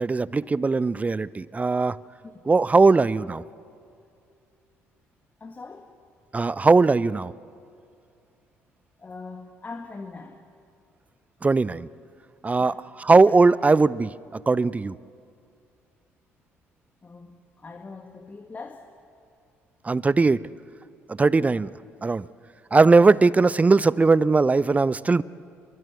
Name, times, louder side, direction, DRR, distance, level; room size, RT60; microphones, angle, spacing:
voice 1, 0.0-2.0 2.5-3.4 6.3-7.3 11.4-11.9 12.4-15.0 19.8-20.5 21.1-21.7 22.0-22.3 22.7-25.2, right 3 dB, 20° right, 21 dB, 0.6 m, -19 dB
voice 2, 5.4-5.9 9.0-10.4 12.6-12.8 17.0-18.8 21.4-21.6, left 3 dB, 25° left, 5 dB, 1.8 m, -41 dB
29.0 x 22.5 x 8.3 m, 2.5 s
figure-of-eight pair, 50°, 7 cm